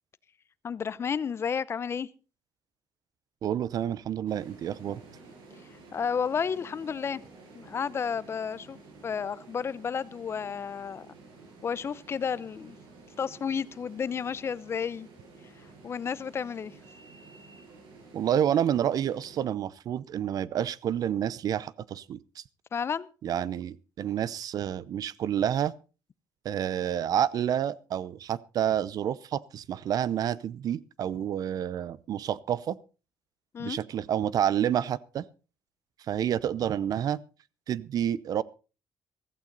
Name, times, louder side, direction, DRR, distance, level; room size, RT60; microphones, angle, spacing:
voice 1, 0.6-2.1 5.9-7.2 7.5-8.8 9.0-11.1 11.6-12.8 13.2-15.1 15.8-16.7 22.7-23.1 33.5-33.8, left 6 dB, 35° left, 0.7 m, -31 dB
voice 2, 3.4-5.0 18.1-22.4 23.2-25.7 26.4-32.8 33.6-35.2 36.1-37.2 37.7-38.4, right 10 dB, 55° right, 0.7 m, -29 dB
sound 1, 4.3-19.4, right 3 dB, 85° right, 8.0 m, -52 dB
15.5 x 14.5 x 4.0 m
cardioid pair, 140°, 8 cm